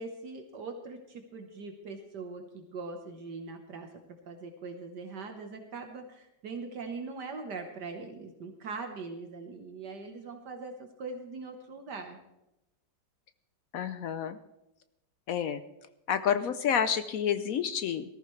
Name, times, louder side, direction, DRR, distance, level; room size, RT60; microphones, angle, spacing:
voice 1, 0.0-3.9 4.3-12.2, right 4 dB, 65° right, 5 dB, 1.7 m, -41 dB
voice 2, 13.7-14.4 15.3-15.6 16.1-18.0, left 8 dB, 70° left, 11 dB, 0.8 m, -29 dB
18.5 x 14.0 x 3.2 m, 0.88 s
omnidirectional pair, 2.0 m